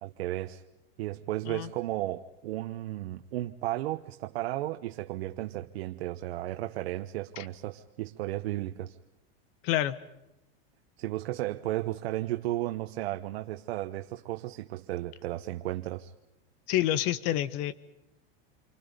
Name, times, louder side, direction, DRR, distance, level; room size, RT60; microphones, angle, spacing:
voice 1, 0.0-0.6 1.0-9.0 11.0-16.1, right 15 dB, 80° right, 1.2 m, -34 dB
voice 2, 9.6-10.0 16.7-17.7, left 13 dB, 50° left, 1.5 m, -28 dB
28.5 x 25.0 x 5.2 m
supercardioid pair, 145°, 31 cm